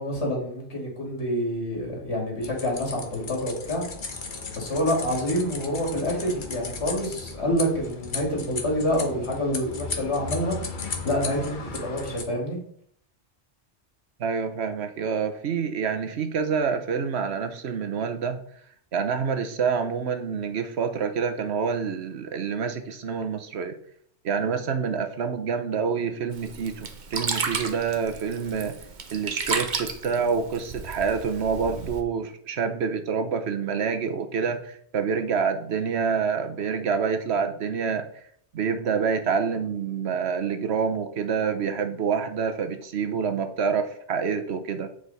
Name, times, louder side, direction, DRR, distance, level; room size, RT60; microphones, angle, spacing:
voice 1, 0.0-3.8 4.5-10.6 11.0-12.6, equal, 70° left, -1 dB, 2.6 m, -27 dB
sound 1, 2.4-12.2, left 4 dB, 45° left, 1.1 m, -36 dB
voice 2, 14.2-18.4 18.9-23.7 24.2-28.8 29.1-38.1 38.5-44.9, right 6 dB, 70° right, 7 dB, 1.1 m, -27 dB
Sink (filling or washing), 26.3-32.0, right 5 dB, 45° right, 0.8 m, -33 dB
8.3 x 5.0 x 4.1 m, 0.63 s
omnidirectional pair, 1.2 m